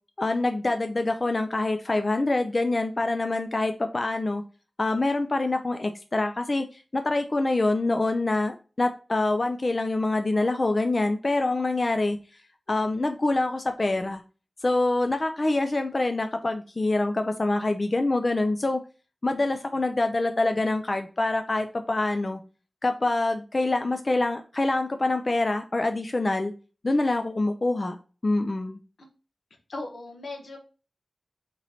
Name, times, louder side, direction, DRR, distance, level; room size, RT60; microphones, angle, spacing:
voice 1, 0.2-4.4 4.8-12.2 12.7-14.2 14.6-18.8 19.2-22.4 22.8-26.5 26.8-28.0 28.2-28.8, left 2 dB, 45° left, 6 dB, 0.4 m, -25 dB
voice 2, 29.7-30.6, left 2 dB, 85° left, 2 dB, 1.0 m, -37 dB
4.1 x 3.0 x 3.9 m, 0.35 s
wide cardioid pair, 60°, 0 cm